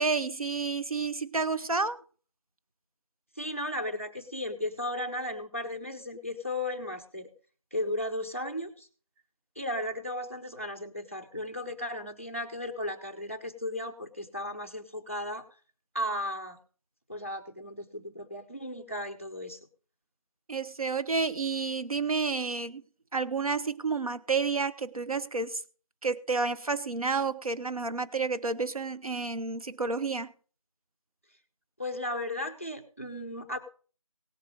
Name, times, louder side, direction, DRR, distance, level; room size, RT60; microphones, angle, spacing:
voice 1, 0.0-2.0 20.5-22.8 23.1-25.6 26.0-30.3, right 4 dB, 85° right, 11 dB, 1.0 m, -30 dB
voice 2, 3.4-7.3 7.7-8.9 9.6-15.5 15.9-16.6 17.1-19.6 31.8-33.6, left 1 dB, 25° left, 5 dB, 0.8 m, -35 dB
17.5 x 7.6 x 5.1 m, 0.40 s
figure-of-eight pair, 180°, 18 cm